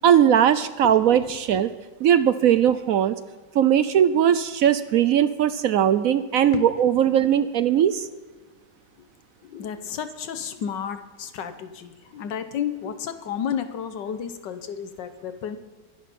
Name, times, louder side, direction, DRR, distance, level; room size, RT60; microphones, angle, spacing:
voice 1, 0.0-1.7 2.0-3.2 3.5-8.1, right 9 dB, 70° right, 13 dB, 0.8 m, -19 dB
voice 2, 9.4-15.6, left 8 dB, 80° left, 9 dB, 1.5 m, -32 dB
23.5 x 11.0 x 4.2 m, 1.3 s
omnidirectional pair, 1.9 m